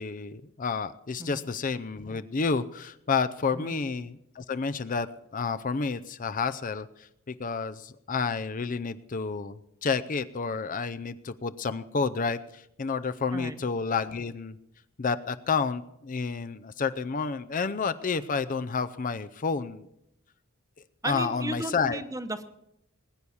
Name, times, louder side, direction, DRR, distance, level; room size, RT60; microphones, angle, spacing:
voice 1, 0.0-5.1 5.3-14.6 15.0-19.9 21.0-22.0, left 5 dB, 40° left, 12 dB, 0.5 m, -30 dB
voice 2, 21.0-22.4, right 2 dB, 15° right, 10 dB, 0.9 m, -35 dB
20.5 x 9.7 x 7.1 m, 0.82 s
head